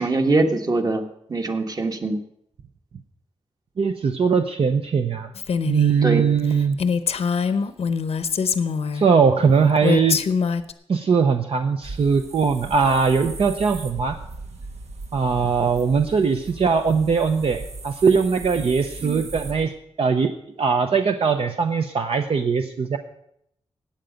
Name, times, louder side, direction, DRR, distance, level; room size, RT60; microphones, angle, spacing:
voice 1, 0.0-2.2 6.0-6.3 19.0-19.3, right 2 dB, 35° right, 4 dB, 1.5 m, -23 dB
voice 2, 3.8-5.3 5.7-6.8 8.9-10.2 10.9-14.2 15.1-19.7 20.0-20.3 20.6-23.0, right 5 dB, 60° right, 5 dB, 0.7 m, -20 dB
Female speech woman speaking, 5.4-6.0 6.4-6.5 6.8-9.1 9.8-10.7, left 5 dB, 75° left, 0.7 m, -23 dB
sound 1, 11.8-19.7, right 3 dB, 85° right, 1.3 m, -38 dB
14.5 x 9.0 x 5.2 m, 0.75 s
wide cardioid pair, 95°, 11 cm